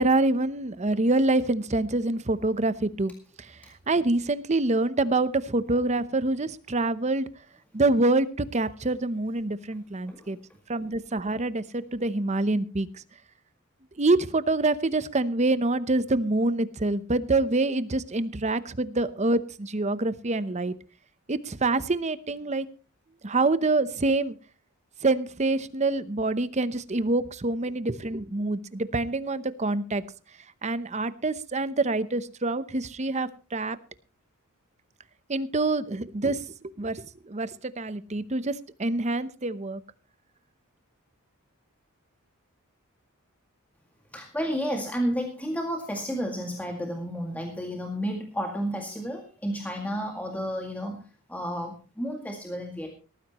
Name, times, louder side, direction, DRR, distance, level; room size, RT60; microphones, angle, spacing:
voice 1, 0.0-3.1 3.4-3.5 3.9-7.3 7.7-10.4 10.7-12.9 14.0-20.7 21.3-22.7 23.2-24.4 25.0-30.0 30.6-33.8 35.3-39.8, right 2 dB, 30° right, 14 dB, 0.8 m, -26 dB
voice 2, 44.1-52.9, equal, 5° left, 2 dB, 2.0 m, -32 dB
18.5 x 14.5 x 3.0 m, 0.34 s
head